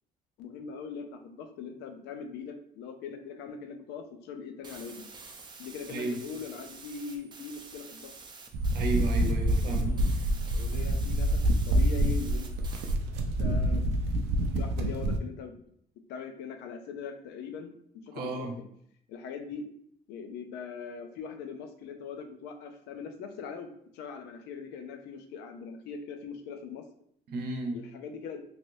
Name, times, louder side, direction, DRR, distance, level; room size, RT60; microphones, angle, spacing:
voice 1, 0.4-5.1 5.6-8.1 9.7-10.0 10.5-12.5 13.4-14.3 14.5-15.7 16.1-17.7 18.0-18.7 19.1-19.6 20.1-23.7 23.9-26.8 27.7-28.4, left 5 dB, 85° left, 6 dB, 0.5 m, -41 dB
sound 1, 4.6-13.0, right 4 dB, 25° right, 0.5 m, -48 dB
sound 2, 8.5-15.2, right 1 dB, 85° right, 0.4 m, -27 dB
voice 2, 8.7-9.9 13.0-13.1 18.1-18.5 27.3-27.8, right 2 dB, 70° right, 2 dB, 0.8 m, -33 dB
3.1 x 2.9 x 2.6 m, 0.69 s
cardioid pair, 110°, 17 cm